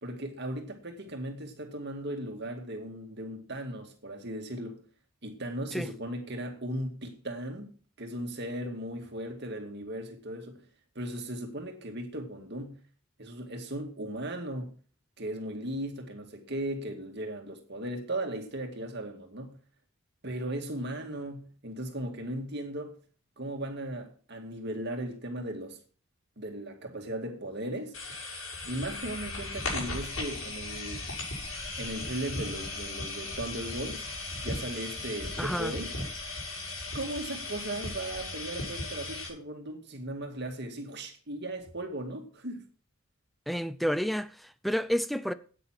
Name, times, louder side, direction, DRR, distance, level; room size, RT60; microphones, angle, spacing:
voice 1, 0.0-4.8 5.2-10.6 11.0-12.8 13.2-14.7 15.2-19.6 20.2-23.0 23.4-25.8 26.4-28.0 28.7-31.1 31.8-34.1 34.4-35.9 36.9-42.6, right 1 dB, 50° right, 2.1 m, -37 dB
sound 1, 27.9-39.3, left 2 dB, 85° left, 6.2 m, -37 dB
voice 2, 35.4-35.7 43.5-45.3, equal, ahead, 0.5 m, -30 dB
9.6 x 9.0 x 6.0 m
head